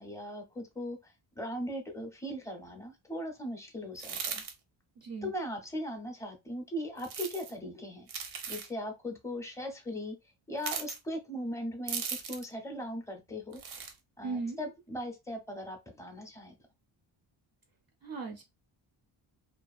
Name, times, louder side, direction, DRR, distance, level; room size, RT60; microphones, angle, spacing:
voice 1, 0.0-4.4 5.2-8.1 8.5-10.1 10.5-13.6 14.2-16.5, equal, 5° left, 0.5 m, -39 dB
sound 1, 4.0-4.5 7.0-7.5 8.1-8.7 10.6-11.0 11.9-12.5 13.5-13.9, right 6 dB, 80° right, 0.7 m, -37 dB
voice 2, 5.0-5.3 14.2-14.6 18.0-18.4, right 4 dB, 50° right, 0.4 m, -37 dB
2.5 x 2.1 x 2.3 m
cardioid pair, 125°, 49 cm